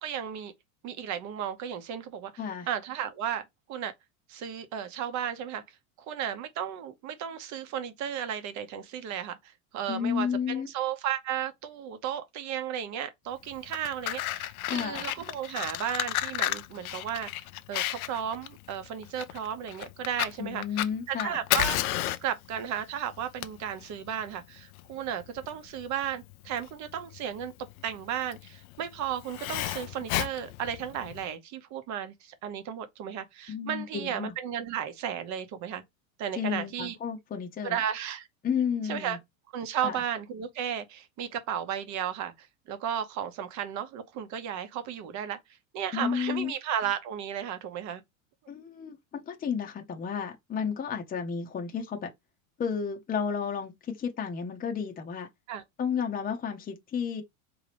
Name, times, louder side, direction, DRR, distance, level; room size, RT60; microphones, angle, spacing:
voice 1, 0.0-0.5 0.8-2.3 2.7-3.9 4.3-5.6 6.1-20.6 21.1-21.8 22.2-27.5 27.8-35.8 36.2-36.9 37.6-38.3 38.8-39.2 39.5-45.4 45.7-48.0 55.5-55.6, right 9 dB, 45° right, 1.0 m, -34 dB
voice 2, 9.9-10.7 14.7-15.0 20.4-21.4 33.5-34.3 36.4-37.8 38.4-39.2 39.8-40.0 45.9-46.5 48.5-52.1 52.6-55.3 55.8-57.2, left 7 dB, 20° left, 0.8 m, -32 dB
Fire, 13.5-31.3, left 14 dB, 80° left, 0.6 m, -33 dB
3.7 x 3.0 x 3.3 m
supercardioid pair, 115°, 42 cm